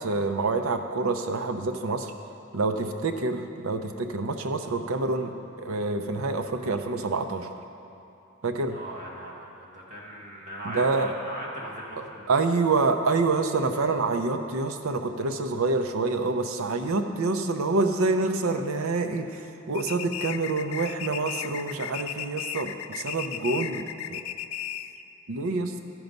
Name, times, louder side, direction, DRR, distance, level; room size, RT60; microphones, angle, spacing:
voice 1, 0.0-2.1 2.5-5.3 5.6-7.5 8.4-8.8 10.6-11.1 12.3-23.8 24.1-24.2 25.3-25.7, right 3 dB, 70° right, 6 dB, 0.6 m, -27 dB
voice 2, 8.7-12.2, right 1 dB, 35° right, -5 dB, 1.7 m, -38 dB
sound 1, 19.7-25.0, left 10 dB, 70° left, 0.3 m, -35 dB
13.0 x 4.7 x 5.3 m, 2.8 s
head